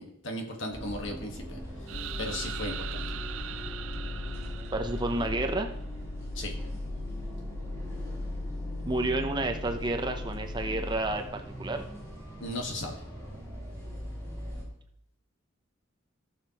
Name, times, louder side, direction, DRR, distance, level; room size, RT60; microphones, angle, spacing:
voice 1, 0.0-1.6 2.2-3.1 6.3-6.5 12.4-13.0, left 1 dB, 60° left, 3 dB, 1.5 m, -36 dB
sound 1, 0.7-14.6, equal, 15° left, 4.0 m, -42 dB
sound 2, 1.9-11.0, left 2 dB, 85° left, 1.4 m, -38 dB
sound 3, 1.9-5.7, right 12 dB, 70° right, 0.4 m, -41 dB
voice 2, 4.7-5.7 8.9-11.8, right 2 dB, 20° right, 5 dB, 0.7 m, -30 dB
15.0 x 6.5 x 3.0 m, 0.72 s
head